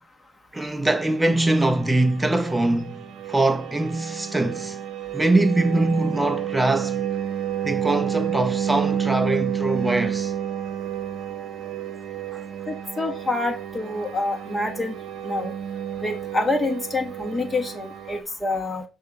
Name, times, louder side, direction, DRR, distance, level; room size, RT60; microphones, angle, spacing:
voice 1, 0.5-4.8 5.1-7.0 7.6-10.3 12.3-12.4, right 2 dB, 10° right, 0.8 m, -23 dB
sound 1, 0.9-18.2, right 9 dB, 70° right, 0.7 m, -30 dB
voice 2, 12.7-14.9 15.2-15.5 16.0-18.8, left 2 dB, 20° left, 1.7 m, -27 dB
6.6 x 2.8 x 5.1 m
cardioid pair, 90°, 0 cm